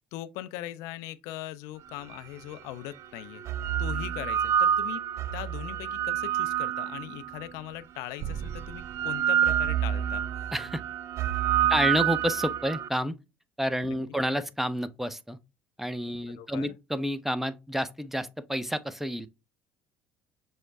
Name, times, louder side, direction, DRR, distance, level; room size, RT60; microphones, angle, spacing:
voice 1, 0.1-3.4 3.8-5.0 5.3-10.5 11.6-11.7 13.9-14.0 14.3-14.4 16.4-16.7, left 14 dB, 75° left, 0.4 m, -40 dB
sound 1, 2.1-2.2 3.2-7.4 8.2-12.9, right 10 dB, 55° right, 0.4 m, -28 dB
voice 2, 10.5-10.8 11.7-13.1 13.6-15.4 15.8-19.3, equal, 5° right, 0.5 m, -29 dB
6.2 x 2.1 x 3.4 m
hypercardioid pair, 70°, 6 cm